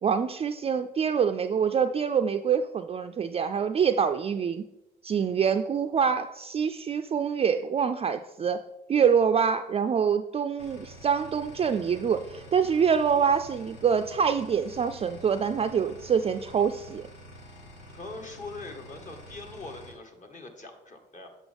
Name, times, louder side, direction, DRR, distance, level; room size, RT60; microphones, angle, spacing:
voice 1, 0.0-4.6 5.0-8.6 8.9-17.1, right 7 dB, 30° right, 8 dB, 0.4 m, -25 dB
sound 1, 10.6-19.9, equal, 80° left, 1.5 m, -48 dB
voice 2, 17.9-21.3, left 3 dB, 40° left, 3 dB, 1.5 m, -42 dB
8.1 x 5.7 x 3.5 m, 0.93 s
supercardioid pair, 65°, 19 cm